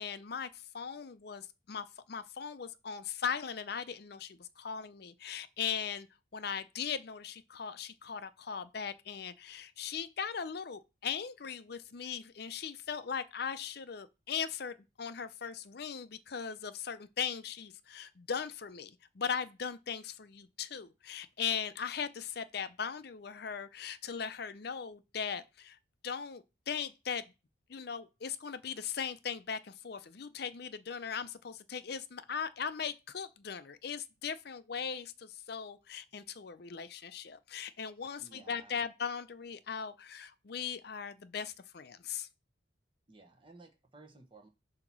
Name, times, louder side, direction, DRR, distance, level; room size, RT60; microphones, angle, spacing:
voice 1, 0.0-6.1 6.3-25.8 26.0-27.2 27.7-42.3, left 7 dB, 55° left, 0.5 m, -39 dB
voice 2, 38.2-38.8 43.1-44.5, right 3 dB, 25° right, 1.2 m, -56 dB
7.7 x 2.9 x 6.0 m
head